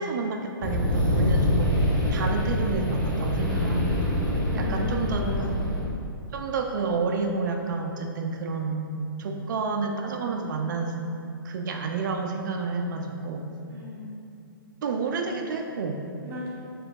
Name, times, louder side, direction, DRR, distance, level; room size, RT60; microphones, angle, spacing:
voice 1, 0.0-1.8 2.1-4.0 4.5-5.3 6.3-10.9 11.4-13.5 14.8-16.0, right 4 dB, 55° right, 3 dB, 0.4 m, -29 dB
sound 1, 0.6-5.8, left 1 dB, 10° left, 0.8 m, -25 dB
voice 2, 4.5-5.6 13.7-14.2 16.2-16.5, left 2 dB, 20° right, -7 dB, 1.0 m, -36 dB
4.4 x 2.9 x 2.4 m, 2.5 s
figure-of-eight pair, 125°, 12 cm